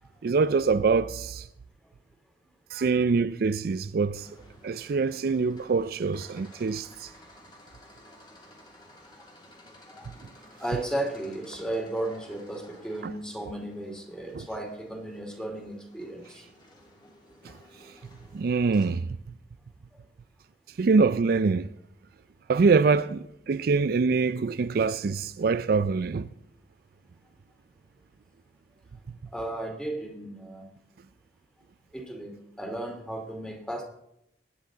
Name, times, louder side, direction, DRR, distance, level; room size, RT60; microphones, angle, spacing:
voice 1, 0.2-1.5 2.7-4.3 4.6-7.1 13.0-13.1 14.4-14.5 18.3-19.1 20.8-21.7 22.5-26.3, right 4 dB, 60° right, 0.4 m, -24 dB
sound 1, 4.1-18.9, left 1 dB, 25° left, 2.7 m, -54 dB
voice 2, 10.6-16.4 29.3-30.6 31.9-33.8, right 1 dB, 5° left, 2.4 m, -34 dB
22.5 x 9.9 x 3.9 m
head